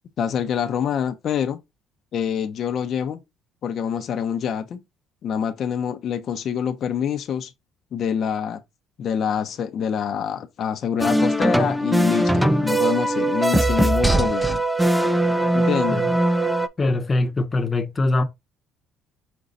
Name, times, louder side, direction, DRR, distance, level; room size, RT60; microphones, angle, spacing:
voice 1, 0.2-1.6 2.1-3.2 3.6-4.8 5.2-7.5 7.9-8.6 9.0-14.6 15.5-16.1, left 8 dB, 55° left, 0.6 m, -26 dB
sound 1, 11.0-16.7, right 1 dB, ahead, 0.4 m, -20 dB
voice 2, 16.8-18.2, left 2 dB, 25° left, 0.8 m, -22 dB
5.2 x 2.3 x 3.9 m
cardioid pair, 105°, 0 cm